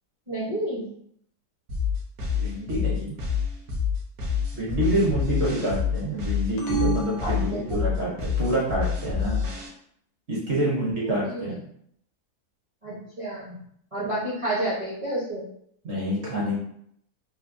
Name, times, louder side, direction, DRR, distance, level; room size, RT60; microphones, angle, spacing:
voice 1, 0.3-0.9 7.2-7.6 10.5-11.4 12.8-13.6 13.9-15.4, right 1 dB, 40° right, -8 dB, 0.5 m, -30 dB
sound 1, 1.7-9.7, left 6 dB, 70° right, 1.2 m, -27 dB
voice 2, 2.4-3.2 4.5-9.5 10.3-11.6 15.8-16.6, right 1 dB, 55° right, -4 dB, 0.9 m, -27 dB
sound 2, 6.6-8.3, right 3 dB, 75° left, 1.0 m, -30 dB
3.3 x 2.1 x 2.5 m, 0.70 s
omnidirectional pair, 1.7 m